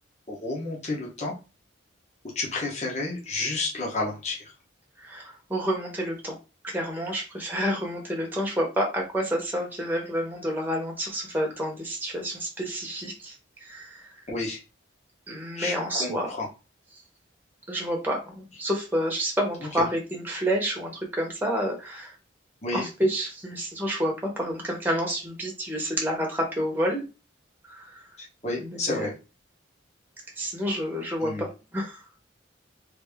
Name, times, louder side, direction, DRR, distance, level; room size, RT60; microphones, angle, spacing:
voice 1, 0.3-1.4 2.3-4.5 14.3-14.6 15.6-16.5 19.8-19.9 22.6-22.9 28.2-29.1 31.2-31.4, left 2 dB, 35° left, -3 dB, 1.0 m, -31 dB
voice 2, 5.0-6.4 6.6-14.2 15.3-16.3 17.7-22.2 22.7-27.0 27.6-28.1 28.6-29.1 30.4-31.5 31.7-32.0, equal, 10° right, -1 dB, 0.8 m, -29 dB
3.2 x 2.6 x 3.4 m, 0.30 s
head